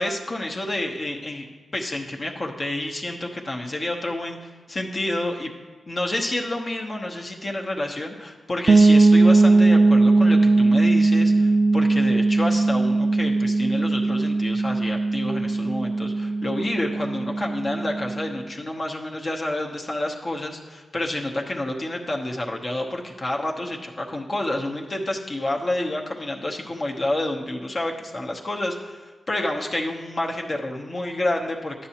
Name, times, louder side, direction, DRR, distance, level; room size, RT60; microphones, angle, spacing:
voice 1, 0.0-1.5 1.7-5.5 5.9-31.7, left 1 dB, 45° left, 0 dB, 0.9 m, -29 dB
sound 1, 8.7-18.4, right 3 dB, 50° right, 0.3 m, -19 dB
9.8 x 6.8 x 2.9 m, 1.4 s
cardioid pair, 50°, 0 cm